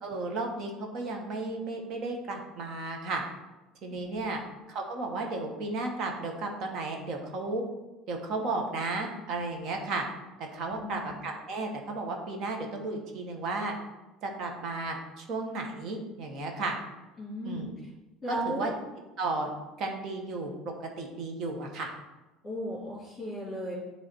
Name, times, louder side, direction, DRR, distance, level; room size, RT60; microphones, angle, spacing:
voice 1, 0.0-3.2 3.8-4.4 4.7-7.6 8.1-10.0 10.5-13.7 14.2-16.8 17.4-17.7 18.3-18.7 19.2-19.5 19.8-21.9, right 3 dB, 45° right, 3 dB, 1.2 m, -34 dB
voice 2, 3.9-4.3 10.7-11.1 17.2-17.9 18.2-18.7 22.4-23.7, right 1 dB, 15° left, -10 dB, 2.4 m, -36 dB
9.5 x 3.3 x 4.4 m, 1.0 s
cardioid pair, 150°, 0 cm